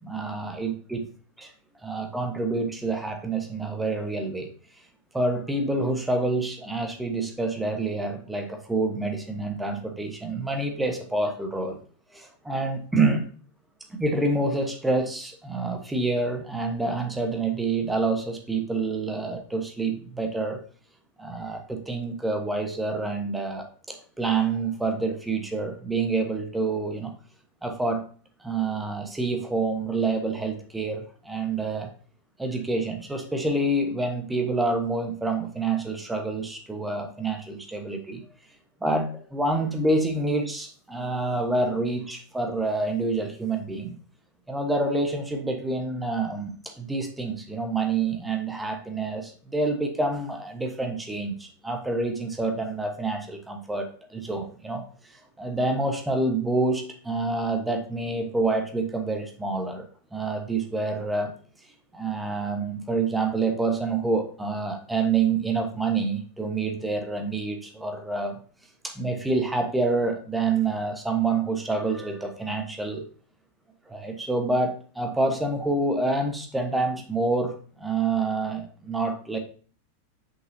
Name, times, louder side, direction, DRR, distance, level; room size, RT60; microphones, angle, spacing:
voice 1, 0.0-1.1 1.4-1.5 1.8-4.5 5.1-11.8 12.1-13.3 13.9-20.6 21.2-27.1 27.6-28.0 28.4-31.9 32.4-38.2 38.8-43.9 44.5-54.8 55.4-59.8 60.1-61.3 61.9-68.4 68.8-73.0 73.9-79.4, right 3 dB, 10° right, 5 dB, 1.2 m, -27 dB
6.2 x 5.5 x 2.8 m, 0.41 s
figure-of-eight pair, 90°, 0 cm